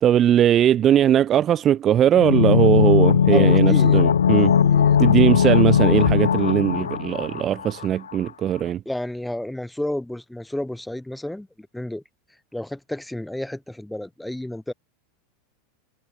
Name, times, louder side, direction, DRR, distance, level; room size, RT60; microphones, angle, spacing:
voice 1, 0.0-4.5 5.0-8.8, right 10 dB, 35° right, 0.6 m, -19 dB
sound 1, 2.1-7.8 8.1-8.2, left 8 dB, 85° left, 1.1 m, -18 dB
voice 2, 3.3-4.0 4.4-5.0 6.1-6.2 8.8-12.0 12.5-14.7, left 1 dB, 5° left, 3.4 m, -31 dB
hypercardioid pair, 95°, 0 cm